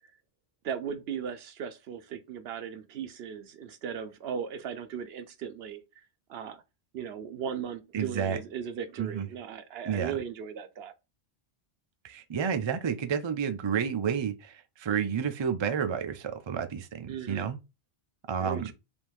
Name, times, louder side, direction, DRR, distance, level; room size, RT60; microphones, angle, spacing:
voice 1, 0.6-6.0 6.3-6.6 6.9-10.9 17.1-17.5 18.4-18.7, right 7 dB, 75° right, 0.9 m, -37 dB
voice 2, 7.9-8.4 9.0-9.3 9.8-10.2 12.0-17.6 18.3-18.7, right 7 dB, 45° right, 0.4 m, -30 dB
3.5 x 2.6 x 4.5 m
omnidirectional pair, 1.1 m